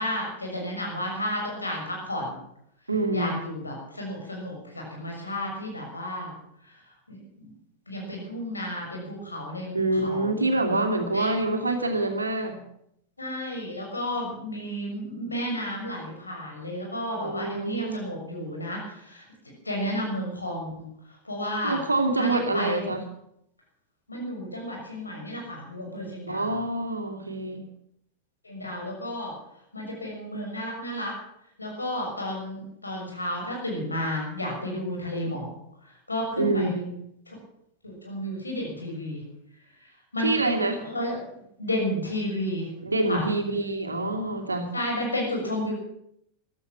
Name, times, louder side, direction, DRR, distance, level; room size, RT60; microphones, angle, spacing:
voice 1, 0.0-2.4 3.1-6.4 7.1-7.5 7.9-10.7 11.1-11.3 13.2-19.2 19.6-20.9 21.2-21.8 22.2-22.9 24.1-26.5 28.4-29.3 29.7-31.1 31.6-35.5 36.1-36.8 37.3-37.4 37.8-39.2 40.1-40.5 40.8-41.2 41.6-42.7 43.1-43.2 44.7-45.7, left 1 dB, 80° left, 0 dB, 6.6 m, -32 dB
voice 2, 2.9-3.4 9.7-12.6 17.1-18.1 21.6-23.0 26.3-27.7 36.4-37.0 40.2-40.8 42.8-44.7, right 2 dB, 80° right, 5 dB, 2.5 m, -26 dB
15.0 x 12.5 x 7.4 m, 0.75 s
figure-of-eight pair, 90°, 0 cm